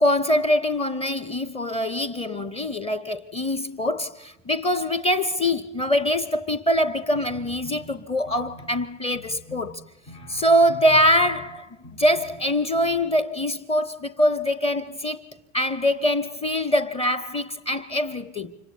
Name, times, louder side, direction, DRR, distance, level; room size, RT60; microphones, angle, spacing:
voice 1, 0.0-9.8 10.3-11.7 12.0-15.2 15.5-18.5, equal, 15° left, 0.7 m, -23 dB
sound 1, 7.1-8.8 9.1-11.5 11.8-12.4 12.7-13.1, equal, 70° left, 6.2 m, -44 dB
30.0 x 25.5 x 4.2 m
figure-of-eight pair, 70°, 39 cm